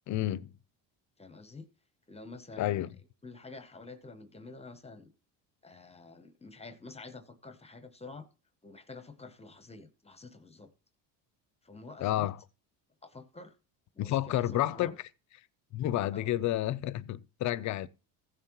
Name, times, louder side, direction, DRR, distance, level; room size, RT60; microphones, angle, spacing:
voice 1, 0.1-0.5 2.6-2.9 12.0-12.4 14.0-15.0 15.7-17.9, left 14 dB, 45° left, 0.5 m, -30 dB
voice 2, 1.2-1.7 2.1-2.7 3.2-5.1 5.6-8.3 8.6-10.7 11.6-12.3 13.0-13.6 13.9-14.9 16.1-16.3, left 3 dB, 15° left, 0.8 m, -48 dB
15.0 x 7.4 x 3.0 m
cardioid pair, 120°, 43 cm